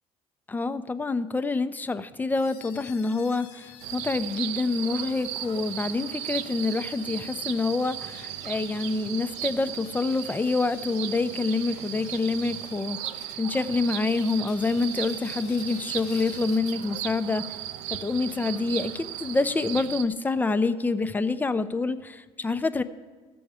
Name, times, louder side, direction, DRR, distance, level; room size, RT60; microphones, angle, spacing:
voice 1, 0.5-13.0 13.4-17.4 18.0-22.8, left 3 dB, 15° left, 12 dB, 0.5 m, -27 dB
sound 1, 2.3-17.1, left 8 dB, 85° left, 1.4 m, -49 dB
sound 2, 3.8-20.0, right 12 dB, 85° right, 0.5 m, -36 dB
14.5 x 6.9 x 4.9 m, 1.3 s
cardioid pair, 105°, 12 cm